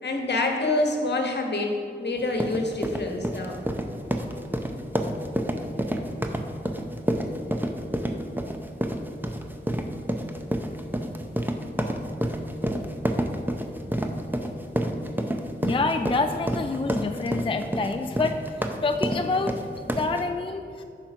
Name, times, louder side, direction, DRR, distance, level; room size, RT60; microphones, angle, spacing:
voice 1, 0.0-3.6, left 2 dB, 60° left, 2 dB, 1.2 m, -27 dB
sound 1, 2.2-20.2, right 1 dB, 10° right, 0.6 m, -29 dB
voice 2, 15.6-20.8, left 3 dB, 30° left, 7 dB, 0.3 m, -27 dB
9.7 x 4.5 x 6.1 m, 2.5 s
wide cardioid pair, 75°, 20 cm